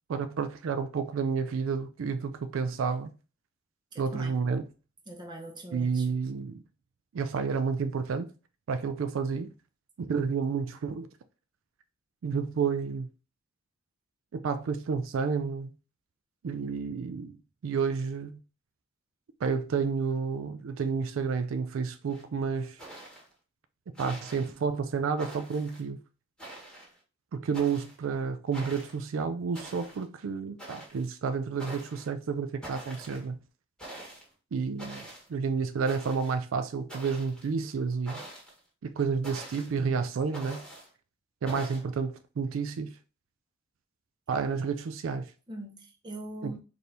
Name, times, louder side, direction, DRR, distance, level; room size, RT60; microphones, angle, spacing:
voice 1, 0.1-3.1 4.0-4.6 5.7-6.6 7.1-8.3 8.7-9.5 10.0-11.1 12.2-13.1 14.3-15.7 16.4-17.4 17.6-18.3 19.4-22.8 23.9-26.0 27.3-33.4 34.5-35.0 35.3-38.2 38.8-40.6 41.4-42.9 44.3-45.3 46.4-46.5, right 5 dB, 75° right, 0.4 m, -30 dB
voice 2, 3.9-4.4 5.1-6.1 45.5-46.6, right 1 dB, 20° right, 0.8 m, -42 dB
sound 1, 22.1-22.2 22.8-23.3 23.9-24.5 25.2-25.8 26.4-27.0 27.5-27.9 28.5-29.0 29.5-30.0 30.6-31.0 31.6-32.1 32.6-33.2 33.8-34.2 34.8-35.3 35.8-36.4 36.9-37.5 38.0-38.6 39.2-39.8 40.3-40.9 41.5-41.8, right 1 dB, 5° left, 1.4 m, -44 dB
4.3 x 2.6 x 3.3 m
head